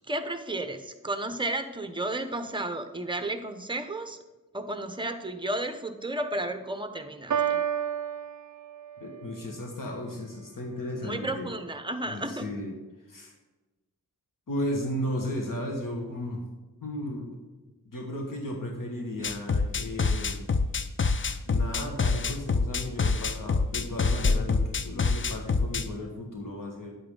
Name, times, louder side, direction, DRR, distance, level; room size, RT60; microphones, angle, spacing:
voice 1, 0.0-4.2 4.5-7.6 11.0-12.5, right 2 dB, 15° right, 8 dB, 0.8 m, -33 dB
Piano, 7.3-9.3, right 8 dB, 60° right, 0.6 m, -30 dB
voice 2, 9.0-11.5 12.1-12.7 13.1-13.3 14.5-16.4 16.8-17.5 17.8-20.5 21.5-26.9, left 1 dB, 70° left, 0 dB, 1.7 m, -35 dB
sound 1, 19.2-25.9, left 4 dB, 35° left, 0.5 m, -26 dB
9.9 x 8.5 x 3.8 m, 1.1 s
wide cardioid pair, 110°, 34 cm